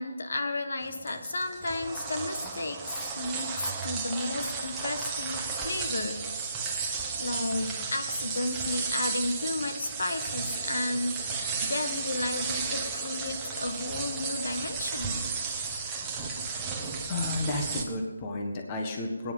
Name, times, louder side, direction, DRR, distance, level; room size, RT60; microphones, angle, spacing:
voice 1, 0.0-6.2 6.7-15.2, left 2 dB, 65° left, 6 dB, 1.6 m, -33 dB
sound 1, 0.8-17.8, right 5 dB, 10° right, 1.3 m, -34 dB
voice 2, 17.1-19.3, left 2 dB, 20° left, 2 dB, 1.6 m, -32 dB
19.0 x 10.0 x 5.6 m, 1.2 s
hypercardioid pair, 170°, 0 cm